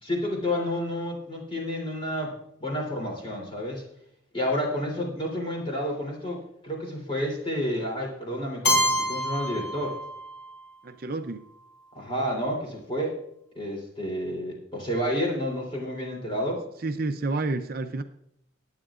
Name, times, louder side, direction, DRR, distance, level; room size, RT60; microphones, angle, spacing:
voice 1, 0.0-3.8 4.3-10.0 11.9-13.2 13.5-16.6, equal, 25° left, -1 dB, 3.2 m, -30 dB
Keyboard (musical), 8.6-10.6, equal, 60° left, 2.0 m, -26 dB
voice 2, 10.8-11.5 16.8-18.0, right 3 dB, 45° right, 8 dB, 0.5 m, -29 dB
20.0 x 8.8 x 2.5 m, 0.74 s
head